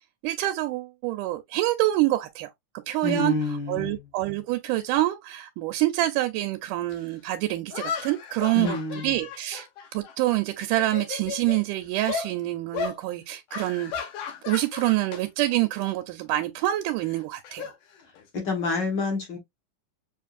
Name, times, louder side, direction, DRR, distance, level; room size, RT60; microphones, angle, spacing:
voice 1, 0.2-2.5 2.9-3.3 3.7-8.8 9.0-9.7 9.9-14.1 14.5-17.7, right 16 dB, 90° right, 2.1 m, -26 dB
voice 2, 3.0-4.0 8.5-9.2 18.3-19.4, left 3 dB, 50° left, 1.4 m, -28 dB
sound 1, 6.9-7.0 7.7-10.4 10.7-11.6 12.1-12.3 12.7-13.0 13.5-15.2 15.5-15.8 17.0-18.4, left 7 dB, 85° left, 2.7 m, -35 dB
7.0 x 2.5 x 2.4 m
omnidirectional pair, 3.6 m